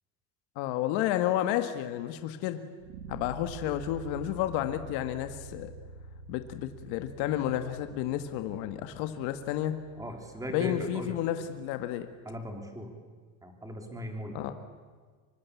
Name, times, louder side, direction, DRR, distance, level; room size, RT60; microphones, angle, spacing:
voice 1, 0.5-2.6 3.1-5.7 6.3-9.7 10.5-12.1 14.3-14.5, left 12 dB, 70° left, 8 dB, 1.8 m, -31 dB
sound 1, 2.8-11.8, right 4 dB, 80° right, 2.4 m, -48 dB
voice 2, 10.0-11.2 12.3-12.9 13.4-14.4, equal, 10° right, 4 dB, 3.7 m, -38 dB
25.5 x 24.0 x 8.5 m, 1.5 s
cardioid pair, 155°, 40 cm